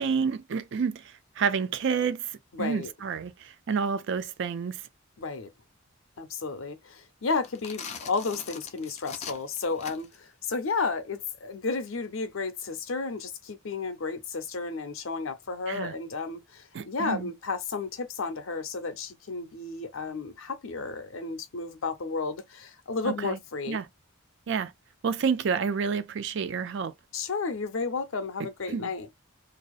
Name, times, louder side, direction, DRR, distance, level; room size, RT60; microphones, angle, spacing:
voice 1, 0.0-4.8 15.7-15.9 16.7-17.3 23.0-23.4 23.7-23.9 24.5-24.7 25.0-26.9 28.7-28.9, right 6 dB, 60° right, 0.4 m, -29 dB
voice 2, 2.5-2.9 5.2-5.5 6.2-23.8 27.1-29.1, left 4 dB, 75° left, 0.7 m, -32 dB
sound 1, 7.3-10.3, left 6 dB, 30° left, 0.4 m, -41 dB
2.7 x 2.0 x 2.4 m
head